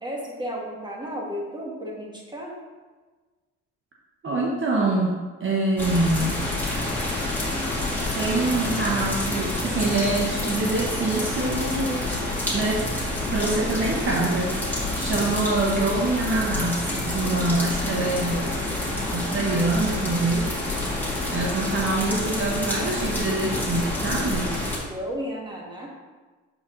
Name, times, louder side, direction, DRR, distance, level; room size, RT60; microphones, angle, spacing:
voice 1, 0.0-2.5 24.9-25.9, equal, 15° right, -3 dB, 1.8 m, -33 dB
voice 2, 4.2-6.4 8.1-12.1 12.5-12.8 13.3-18.5 19.1-20.6 21.3-24.5, right 2 dB, 45° right, -3 dB, 1.1 m, -25 dB
sound 1, 5.8-24.8, left 2 dB, 5° left, 2.1 m, -28 dB
7.8 x 4.4 x 3.8 m, 1.3 s
cardioid pair, 90°, 30 cm